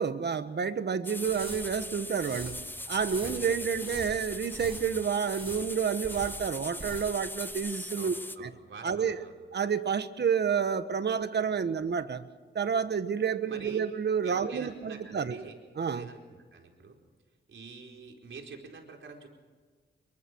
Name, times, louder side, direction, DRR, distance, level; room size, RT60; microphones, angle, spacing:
voice 1, 0.0-2.6 2.9-8.5 8.8-9.2 9.5-12.3 12.5-15.4 15.8-16.1, right 6 dB, 60° right, 11 dB, 1.4 m, -29 dB
sound 1, 1.0-8.4, left 1 dB, 10° left, 1.1 m, -40 dB
sound 2, 1.2-7.2 7.5-7.6, right 2 dB, 25° right, 6.8 m, -46 dB
voice 2, 3.2-3.8 8.0-9.3 13.5-13.8 14.2-15.5 15.9-17.0 17.5-19.3, right 4 dB, 85° right, 1 dB, 4.6 m, -47 dB
27.5 x 23.0 x 4.7 m, 1.4 s
wide cardioid pair, 105°, 19 cm